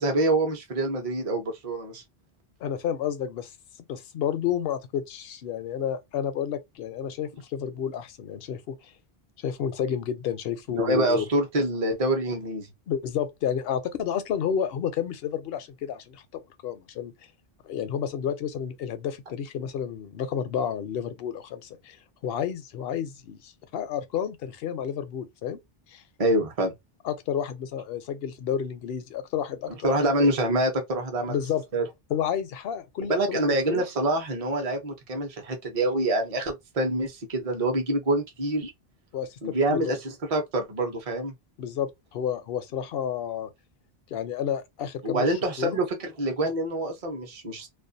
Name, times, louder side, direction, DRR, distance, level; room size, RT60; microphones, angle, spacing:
voice 1, 0.0-2.0 10.7-12.7 26.2-26.7 29.8-31.4 31.7-31.8 33.1-38.7 39.4-40.0 40.3-41.3 45.0-47.7, right 1 dB, 40° right, 0.7 m, -26 dB
voice 2, 2.6-3.5 3.9-8.9 9.4-11.3 12.9-17.1 17.6-22.0 22.2-25.6 25.9-26.0 27.0-30.0 31.3-31.6 32.1-33.8 39.1-40.0 41.6-43.5 44.1-45.8, left 8 dB, 70° left, 0.8 m, -31 dB
2.4 x 2.2 x 2.6 m
omnidirectional pair, 1.0 m